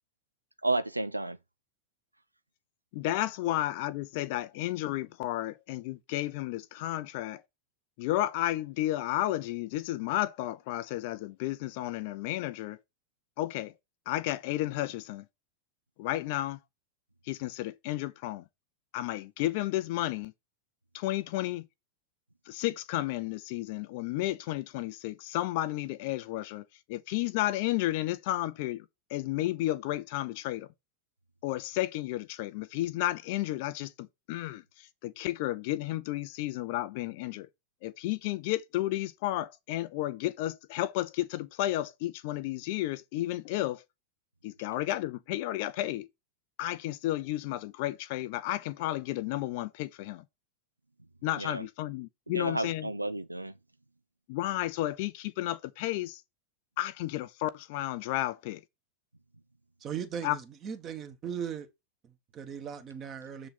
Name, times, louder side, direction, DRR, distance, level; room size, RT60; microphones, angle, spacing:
voice 1, 0.6-1.4 51.4-51.7 52.3-53.5, right 2 dB, 85° right, 0.3 m, -31 dB
voice 2, 2.9-7.4 8.0-12.8 13.4-13.7 14.1-15.2 16.0-16.6 17.3-18.4 18.9-20.3 20.9-21.6 22.5-26.6 26.9-28.8 29.1-30.7 31.4-34.6 35.0-37.5 37.8-43.8 44.4-46.1 46.6-50.2 51.2-52.9 54.3-56.2 56.8-58.6 60.2-60.4, left 15 dB, 50° left, 0.5 m, -32 dB
voice 3, 59.8-61.7 62.0-63.5, right 8 dB, 30° right, 1.4 m, -38 dB
6.8 x 3.8 x 4.3 m
figure-of-eight pair, 90°, 0 cm